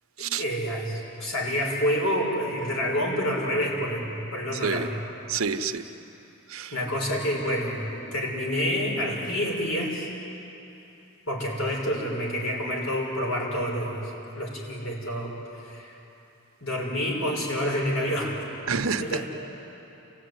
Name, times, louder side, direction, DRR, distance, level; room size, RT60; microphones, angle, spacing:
voice 1, 0.2-4.9 6.7-10.1 11.3-15.3 15.6-15.9 16.6-18.4 19.0-19.2, equal, 75° left, -2 dB, 6.0 m, -28 dB
voice 2, 4.5-4.9 5.3-5.9 6.5-6.8 18.7-19.2, right 5 dB, 85° right, 7 dB, 1.1 m, -28 dB
27.5 x 16.5 x 9.6 m, 3.0 s
head